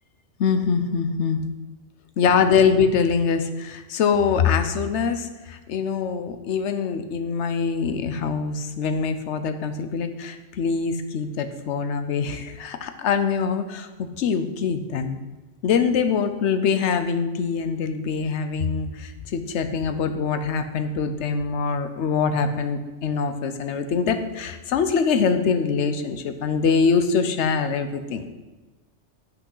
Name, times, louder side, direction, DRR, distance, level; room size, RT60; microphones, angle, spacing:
voice 1, 0.4-1.4 2.2-15.2 15.6-28.3, left 6 dB, 70° left, 9 dB, 1.0 m, -24 dB
9.0 x 6.0 x 5.5 m, 1.2 s
omnidirectional pair, 1.2 m